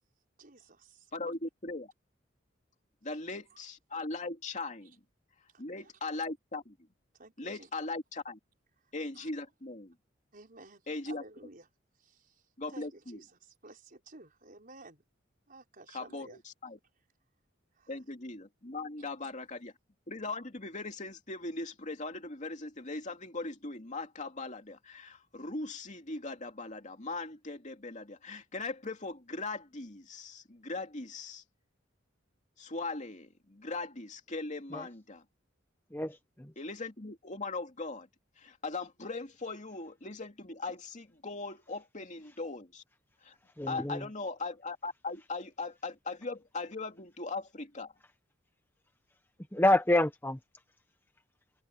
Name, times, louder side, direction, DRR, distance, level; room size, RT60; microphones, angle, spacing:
voice 1, 0.4-1.1 3.5-3.6 4.8-5.0 5.5-5.9 7.1-7.7 9.1-9.3 10.3-11.7 12.0-12.4 12.7-15.0 15.5-16.4 17.7-18.0 19.0-19.1, right 2 dB, 50° right, 5.1 m, -54 dB
voice 2, 1.1-1.9 3.0-4.9 5.6-6.7 7.4-8.4 8.9-9.9 10.9-11.2 12.6-13.2 15.9-16.8 17.9-19.7 20.1-31.4 32.6-35.2 36.6-38.1 38.4-42.8 43.2-43.3 43.7-47.9, left 3 dB, 40° left, 2.7 m, -39 dB
voice 3, 35.9-36.5 43.6-44.1 49.5-50.4, left 1 dB, 10° left, 1.3 m, -28 dB
head